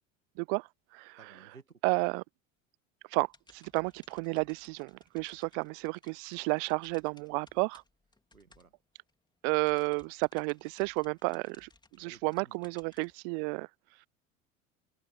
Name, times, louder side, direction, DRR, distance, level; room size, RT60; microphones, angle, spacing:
voice 1, 0.4-1.2 1.8-2.2 3.1-7.8 9.4-11.7 12.0-13.7, right 39 dB, 40° right, 0.4 m, -32 dB
voice 2, 1.2-1.9 8.3-8.7 12.0-12.7, right 5 dB, 85° right, 2.1 m, -56 dB
sound 1, 3.2-9.1 9.5-13.1, left 3 dB, 10° left, 3.3 m, -63 dB
open air
figure-of-eight pair, 70°, 42 cm